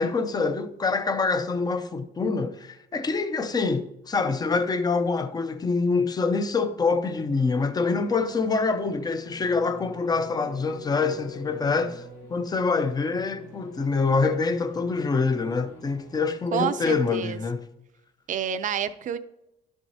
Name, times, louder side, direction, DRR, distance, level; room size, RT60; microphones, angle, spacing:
voice 1, 0.0-12.0 12.3-17.7, left 4 dB, 25° left, 0.6 m, -25 dB
sound 1, 7.3-16.1, left 1 dB, 85° left, 2.2 m, -46 dB
voice 2, 16.5-17.4 18.3-19.2, right 8 dB, 50° right, 0.5 m, -28 dB
12.0 x 6.2 x 2.8 m
cardioid pair, 110°, 17 cm